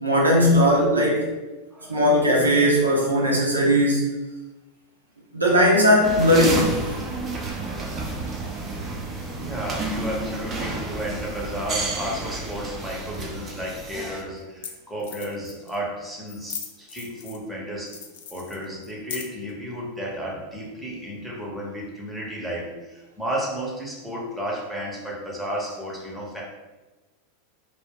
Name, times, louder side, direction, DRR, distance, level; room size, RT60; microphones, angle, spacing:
voice 1, 0.0-1.2 1.9-4.1 5.3-6.7, equal, 85° right, -3 dB, 0.6 m, -18 dB
voice 2, 1.7-2.1 7.0-7.2 9.4-18.0 18.3-26.4, equal, ahead, -5 dB, 0.8 m, -33 dB
sound 1, 6.0-14.2, right 3 dB, 30° right, 0.6 m, -31 dB
sound 2, 14.4-14.5 14.6-14.7 15.0-15.8 16.3-17.5 17.9-19.5, left 7 dB, 60° left, 0.4 m, -38 dB
2.2 x 2.2 x 3.6 m, 1.1 s
figure-of-eight pair, 85°, 0 cm